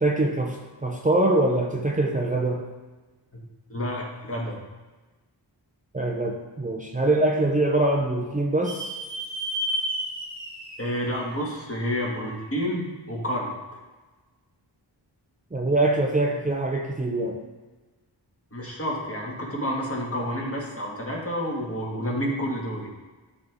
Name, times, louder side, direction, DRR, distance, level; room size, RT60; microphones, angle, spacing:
voice 1, 0.0-2.7 5.9-8.9 15.5-17.4, right 2 dB, 20° right, -1 dB, 0.6 m, -24 dB
voice 2, 3.7-4.6 10.8-13.5 18.5-22.9, equal, 30° left, -3 dB, 2.0 m, -29 dB
sound 1, 8.6-12.1, right 1 dB, 85° left, 2.4 m, -32 dB
11.0 x 3.7 x 3.6 m, 1.2 s
wide cardioid pair, 55°, 44 cm